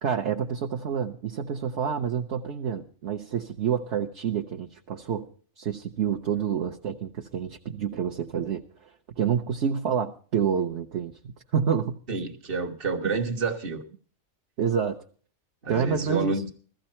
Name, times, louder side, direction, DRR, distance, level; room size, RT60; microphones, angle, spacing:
voice 1, 0.0-5.2 5.6-8.9 9.2-12.0 14.6-15.0 15.7-16.4, right 7 dB, 60° right, 3 dB, 1.1 m, -28 dB
voice 2, 12.1-13.8 15.6-16.5, right 4 dB, 45° right, 4 dB, 1.4 m, -29 dB
15.5 x 14.5 x 4.3 m, 0.42 s
omnidirectional pair, 1.4 m